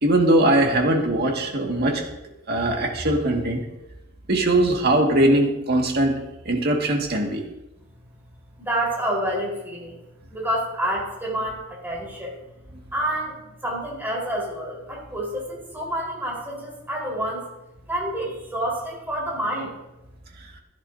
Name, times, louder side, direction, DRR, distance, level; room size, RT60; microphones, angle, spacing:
voice 1, 0.0-2.0 2.5-3.6 4.3-6.1 6.5-7.4, right 1 dB, 50° right, 1 dB, 2.0 m, -20 dB
voice 2, 8.7-10.0 10.3-12.3 12.9-17.4 17.9-19.7, right 1 dB, 10° right, -4 dB, 4.3 m, -28 dB
16.0 x 10.5 x 2.7 m, 0.95 s
head